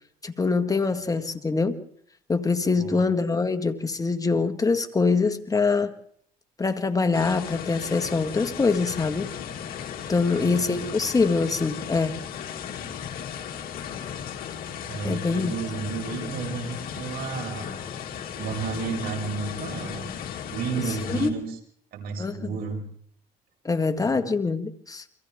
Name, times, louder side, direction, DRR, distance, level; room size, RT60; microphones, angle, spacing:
voice 1, 0.2-1.8 2.3-5.9 6.6-9.3 10.1-12.2 15.0-15.6 20.9-21.4 22.2-22.6 23.7-25.0, left 4 dB, 20° left, 8 dB, 1.7 m, -24 dB
voice 2, 2.7-3.0 10.3-10.7 14.9-17.7 18.4-20.1 20.4-21.5 21.9-22.8 24.1-24.3, right 5 dB, 65° right, 1 dB, 6.6 m, -32 dB
sound 1, 7.1-21.3, left 8 dB, 60° left, 2.7 m, -36 dB
29.5 x 25.0 x 3.6 m, 0.64 s
cardioid pair, 110°, 17 cm